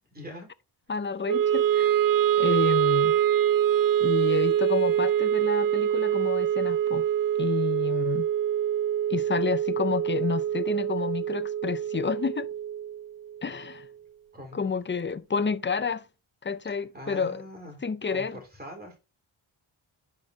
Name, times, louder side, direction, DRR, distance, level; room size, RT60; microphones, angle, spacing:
voice 1, 0.1-0.5 14.3-14.6 16.9-17.8 18.1-19.0, equal, 20° right, 3.8 m, -42 dB
voice 2, 0.9-1.9 2.4-3.2 4.0-7.0 7.4-8.3 9.1-12.5 13.4-13.9 14.5-16.0 16.4-17.4 17.8-18.4, left 5 dB, 25° left, 0.4 m, -29 dB
Wind instrument woodwind instrument, 1.3-13.5, right 10 dB, 45° right, 0.5 m, -25 dB
10.5 x 5.2 x 2.7 m
wide cardioid pair, 130°, 49 cm